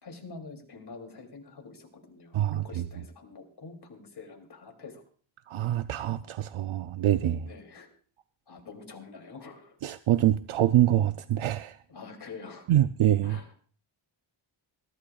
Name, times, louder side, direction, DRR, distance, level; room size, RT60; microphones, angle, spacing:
voice 1, 0.0-5.0 7.5-7.9 8.5-9.8 11.9-12.7 13.2-13.7, left 4 dB, 50° left, 2.9 m, -46 dB
voice 2, 2.3-2.9 5.5-7.5 9.8-11.8 12.7-13.4, right 12 dB, 80° right, 0.6 m, -25 dB
21.5 x 15.0 x 2.4 m
wide cardioid pair, 150°, 49 cm